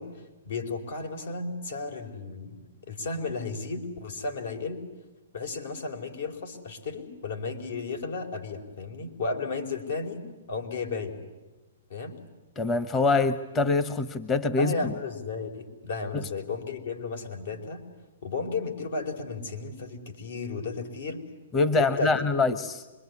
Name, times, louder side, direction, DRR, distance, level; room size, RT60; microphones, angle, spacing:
voice 1, 0.0-4.9 5.3-10.2 10.5-11.2 11.9-12.2 14.6-17.8 18.2-21.2 21.8-22.3, left 4 dB, 75° left, 5 dB, 4.7 m, -34 dB
voice 2, 12.6-14.9 16.1-16.3 21.5-22.8, left 3 dB, 20° left, 10 dB, 1.0 m, -25 dB
26.5 x 22.5 x 9.7 m, 1.2 s
hypercardioid pair, 145°, 0 cm